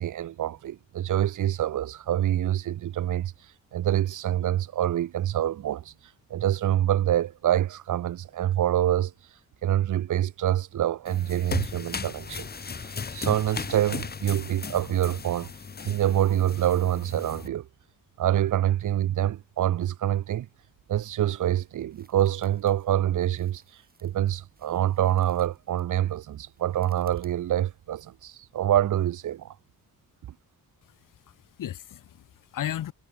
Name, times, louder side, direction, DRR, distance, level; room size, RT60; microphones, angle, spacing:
voice 1, 0.0-3.3 3.7-5.9 6.3-9.1 9.6-12.5 12.8-15.5 15.8-17.7 18.2-20.5 20.9-23.6 24.0-29.6, right 12 dB, 60° right, 0.5 m, -26 dB
sound 1, 11.1-17.5, left 5 dB, 25° left, 0.9 m, -36 dB
sound 2, 20.9-27.8, right 4 dB, 25° right, 4.1 m, -63 dB
voice 2, 30.8-32.9, left 11 dB, 60° left, 0.7 m, -36 dB
wide cardioid pair, 165°, 36 cm